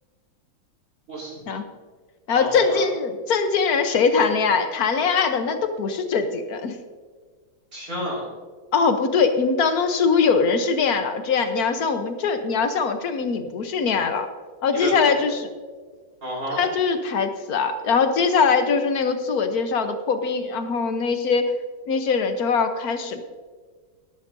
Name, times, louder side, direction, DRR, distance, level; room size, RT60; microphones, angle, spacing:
voice 1, 1.1-1.4 2.3-2.8 7.7-8.3 14.7-15.2 16.2-16.6, equal, 40° right, -3 dB, 4.6 m, -30 dB
voice 2, 2.3-6.8 8.7-14.3 14.6-15.5 16.5-21.5 21.9-23.2, left 5 dB, 55° left, 8 dB, 1.2 m, -22 dB
17.5 x 12.0 x 2.7 m, 1.5 s
omnidirectional pair, 2.3 m